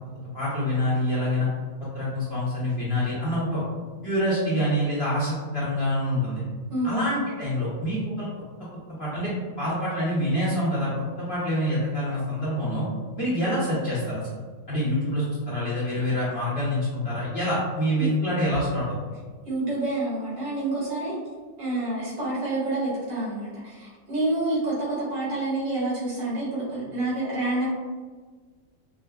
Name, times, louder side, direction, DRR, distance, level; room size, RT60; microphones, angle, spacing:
voice 1, 0.3-1.5 1.9-3.6 4.0-6.4 6.8-8.3 9.0-9.3 9.6-10.9 11.2-12.9 13.2-14.3 14.7-18.9, equal, 45° left, -9 dB, 0.9 m, -26 dB
voice 2, 6.7-7.1 18.0-18.1 19.5-21.2 21.6-27.7, right 2 dB, 75° right, -8 dB, 2.1 m, -28 dB
4.9 x 2.1 x 2.3 m, 1.4 s
omnidirectional pair, 2.0 m